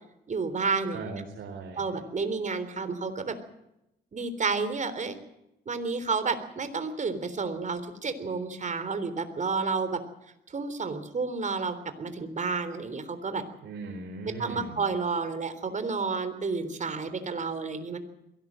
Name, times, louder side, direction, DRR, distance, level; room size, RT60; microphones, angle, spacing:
voice 1, 0.3-1.0 1.8-3.4 4.1-5.2 5.7-10.0 10.5-13.4 14.4-18.0, right 4 dB, 40° right, 11 dB, 3.6 m, -30 dB
voice 2, 0.9-1.9 13.6-14.8, right 3 dB, 65° right, 3 dB, 4.3 m, -38 dB
22.5 x 17.5 x 7.6 m, 0.85 s
cardioid pair, 90°, 20 cm